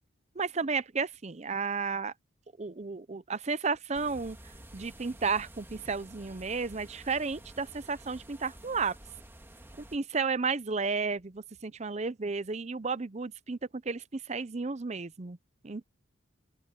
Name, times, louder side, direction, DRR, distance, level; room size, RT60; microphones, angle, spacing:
voice 1, 0.4-2.1 2.6-4.4 4.7-9.0 9.9-13.6 13.9-15.4 15.6-15.9, right 4 dB, 35° right, 0.6 m, -32 dB
sound 1, 3.9-10.0, right 1 dB, 10° right, 1.7 m, -50 dB
open air
head